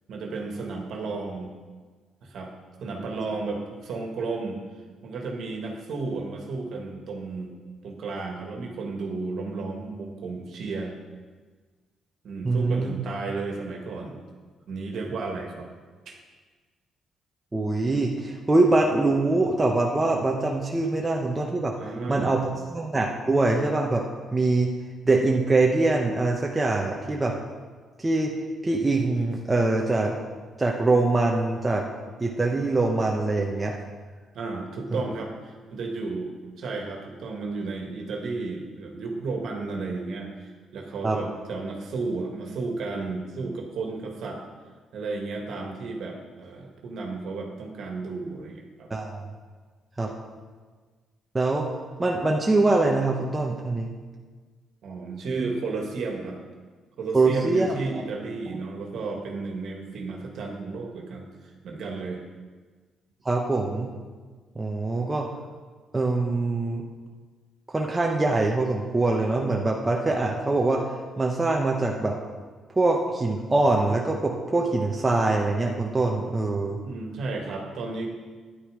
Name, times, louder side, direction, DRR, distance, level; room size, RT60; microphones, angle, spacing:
voice 1, 0.1-1.5 2.2-2.5 2.8-4.6 5.0-7.5 7.8-10.9 12.2-14.2 14.7-15.7 16.0-16.2 21.8-22.3 34.3-44.4 44.9-48.9 54.8-56.4 57.0-62.2 76.8-78.1, right 3 dB, 70° right, 1 dB, 1.8 m, -33 dB
voice 2, 12.4-12.9 17.5-21.7 22.1-22.4 22.7-24.0 24.3-24.7 25.0-27.3 28.0-28.3 28.6-30.1 30.6-31.8 32.2-33.7 34.9-35.0 41.0-41.2 48.9-49.2 50.0-50.1 51.3-51.6 52.0-53.9 55.3-55.5 57.1-57.8 63.2-63.9 64.5-65.3 65.9-66.8 67.7-70.8 71.2-72.1 72.7-76.8, right 2 dB, 20° right, -1 dB, 1.1 m, -23 dB
9.9 x 8.7 x 5.0 m, 1.4 s
cardioid pair, 90°, 0 cm